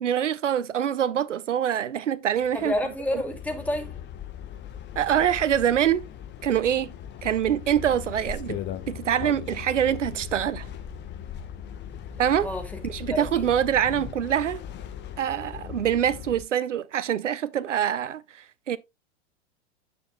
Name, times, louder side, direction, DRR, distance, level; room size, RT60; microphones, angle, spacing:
voice 1, 0.0-2.7 3.1-3.2 5.0-6.0 6.4-6.9 7.2-8.6 8.9-10.7 12.2-12.5 12.8-14.6 15.2-18.8, right 9 dB, 90° right, 0.7 m, -25 dB
sound 1, 2.4-16.4, left 9 dB, 30° left, 1.2 m, -39 dB
voice 2, 2.5-4.0 12.4-12.7 13.1-13.5, left 1 dB, 5° left, 2.3 m, -29 dB
9.5 x 6.8 x 2.2 m
hypercardioid pair, 105°, 36 cm